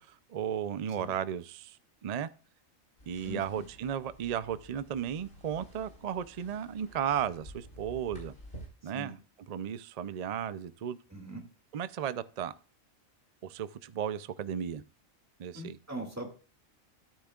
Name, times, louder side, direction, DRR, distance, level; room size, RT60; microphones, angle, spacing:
voice 1, 0.0-1.8 2.0-2.3 3.1-8.3 8.8-9.1 9.5-11.0 11.7-12.5 13.4-14.8 15.4-15.8, right 9 dB, 70° right, 0.3 m, -35 dB
sound 1, 3.0-8.7, right 1 dB, 45° left, 4.7 m, -51 dB
voice 2, 3.2-3.6 8.8-9.1 11.1-11.4 15.5-16.4, equal, 10° right, 2.2 m, -41 dB
13.5 x 9.2 x 2.4 m
omnidirectional pair, 1.4 m